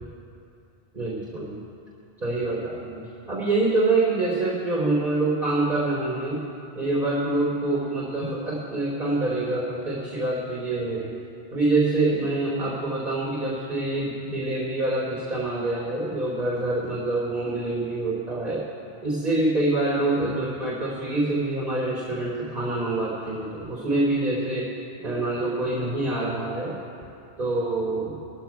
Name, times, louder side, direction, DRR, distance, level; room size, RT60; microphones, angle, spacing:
voice 1, 0.9-1.6 2.2-3.0 3.3-6.4 6.8-11.2 11.5-18.6 19.0-24.7 25.0-26.7 27.4-28.2, right 2 dB, 45° right, -6 dB, 3.7 m, -26 dB
22.0 x 15.0 x 2.3 m, 2.6 s
omnidirectional pair, 1.1 m